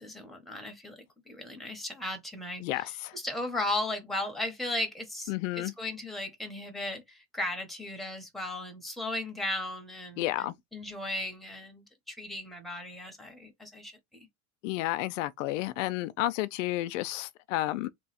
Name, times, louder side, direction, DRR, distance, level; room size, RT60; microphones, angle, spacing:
voice 1, 0.0-14.3, left 1 dB, ahead, 1.0 m, -36 dB
voice 2, 2.6-3.1 5.3-5.7 10.2-10.5 14.6-17.9, left 16 dB, 90° left, 0.6 m, -31 dB
3.2 x 2.3 x 4.1 m
supercardioid pair, 145°, 37 cm